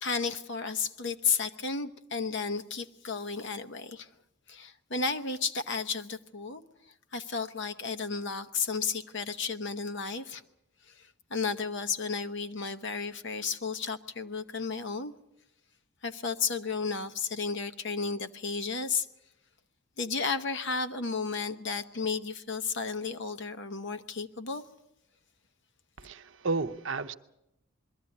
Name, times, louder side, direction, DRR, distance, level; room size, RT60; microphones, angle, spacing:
voice 1, 0.0-4.1 4.5-10.4 10.8-15.1 16.0-19.1 20.0-24.6, left 5 dB, 55° left, 9 dB, 1.0 m, -33 dB
voice 2, 26.0-27.1, right 3 dB, 55° right, 9 dB, 0.8 m, -32 dB
22.0 x 14.0 x 9.7 m, 0.87 s
head